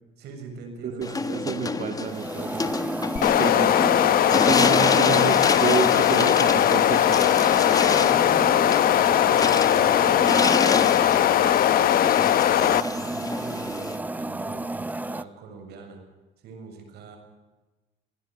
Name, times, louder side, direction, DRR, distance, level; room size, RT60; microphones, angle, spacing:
voice 1, 0.2-2.4 7.9-11.7 12.1-16.0 16.4-17.2, right 3 dB, 75° right, 4 dB, 7.5 m, -42 dB
voice 2, 0.8-2.7 3.3-7.2, right 7 dB, 50° right, 4 dB, 2.2 m, -30 dB
sound 1, 1.0-14.0, left 4 dB, 20° left, 1.4 m, -29 dB
sound 2, 2.0-15.2, right 2 dB, 10° right, 0.8 m, -33 dB
sound 3, 3.2-12.8, left 11 dB, 60° left, 1.0 m, -20 dB
21.5 x 17.0 x 8.3 m, 1.1 s
cardioid pair, 110°, 17 cm